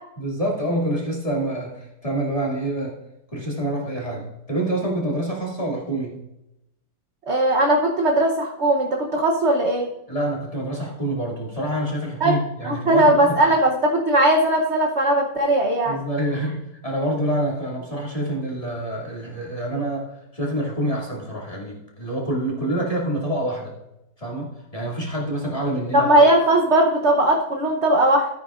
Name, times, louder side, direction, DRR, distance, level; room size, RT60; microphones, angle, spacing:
voice 1, 0.2-3.0 3.3-6.2 10.1-13.5 15.8-23.7 24.2-26.1, right 1 dB, 20° left, -4 dB, 2.3 m, -27 dB
voice 2, 7.3-9.9 12.2-12.4 12.6-16.0 25.9-28.3, right 1 dB, 50° right, 1 dB, 0.9 m, -18 dB
13.5 x 9.4 x 2.5 m, 0.88 s
omnidirectional pair, 2.1 m